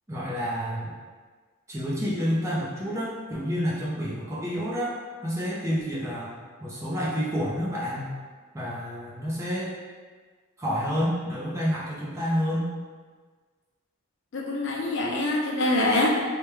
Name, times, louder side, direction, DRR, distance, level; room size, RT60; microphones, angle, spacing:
voice 1, 0.1-0.9 1.7-4.9 5.2-6.3 6.6-8.1 8.5-9.7 10.6-12.7, equal, 15° right, -7 dB, 0.5 m, -29 dB
voice 2, 14.3-16.1, left 2 dB, 55° left, -2 dB, 0.4 m, -24 dB
3.3 x 2.1 x 3.0 m, 1.5 s
head